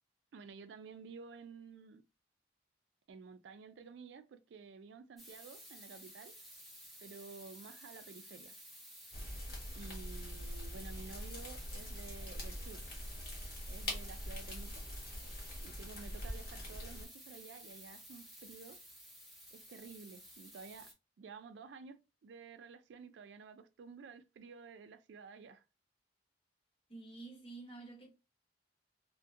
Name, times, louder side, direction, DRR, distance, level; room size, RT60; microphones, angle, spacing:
voice 1, 0.3-2.0 3.1-6.3 7.0-8.5 9.7-12.8 13.7-14.8 15.6-18.8 19.5-25.6, right 5 dB, 75° right, 0.3 m, -52 dB
sound 1, 5.2-20.9, equal, ahead, 0.5 m, -54 dB
sound 2, 9.1-17.1, left 1 dB, 55° left, 1.1 m, -44 dB
voice 2, 26.9-28.1, right 3 dB, 30° left, 1.0 m, -49 dB
2.6 x 2.2 x 2.4 m
head